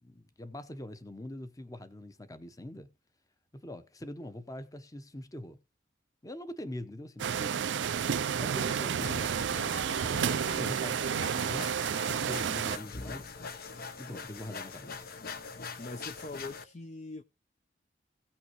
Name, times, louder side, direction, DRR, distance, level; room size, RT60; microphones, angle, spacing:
voice 1, 0.0-2.9 3.5-5.6 6.2-7.7 8.4-9.3 9.6-11.7 12.1-13.3 14.0-15.1, left 1 dB, 20° left, 1.0 m, -43 dB
sound 1, 7.2-12.8, right 7 dB, 75° right, 0.4 m, -31 dB
sound 2, 9.0-16.6, left 4 dB, 55° left, 1.0 m, -43 dB
voice 2, 15.8-17.2, left 2 dB, 40° left, 0.6 m, -42 dB
17.0 x 5.9 x 3.1 m
head